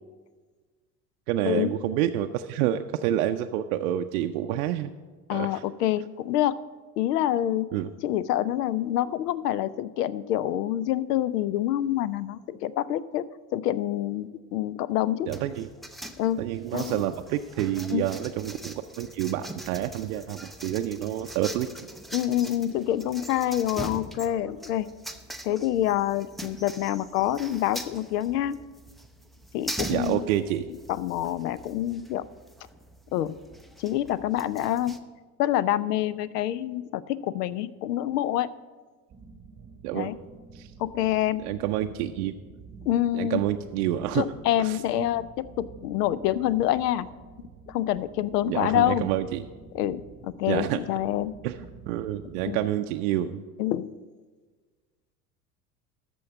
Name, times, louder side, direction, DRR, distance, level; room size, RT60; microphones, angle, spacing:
voice 1, 1.3-4.9 5.3-5.6 7.7-7.9 15.3-15.7 16.4-21.9 29.9-30.7 39.8-40.1 40.5-40.7 41.4-42.3 43.1-44.3 44.6-45.1 48.5-49.4 50.5-50.8 51.4-51.6 51.9-53.4, right 12 dB, 65° right, 6 dB, 0.6 m, -28 dB
voice 2, 5.3-6.6 7.0-7.7 8.0-13.2 13.5-15.3 16.2-16.4 16.7-17.0 17.9-18.0 22.1-24.9 25.4-28.6 29.5-30.2 30.9-32.2 33.1-33.3 33.8-35.0 35.4-38.5 39.9-40.1 40.8-41.4 42.9-43.4 44.1-47.1 47.7-49.1 49.7-51.3 52.4-52.6 53.6-53.9, left 12 dB, 75° left, 19 dB, 0.6 m, -26 dB
sound 1, 15.3-35.0, right 1 dB, ahead, 0.4 m, -42 dB
sound 2, 39.1-52.7, right 4 dB, 25° right, 1.0 m, -49 dB
13.0 x 4.5 x 7.2 m, 1.4 s
hypercardioid pair, 75°, 49 cm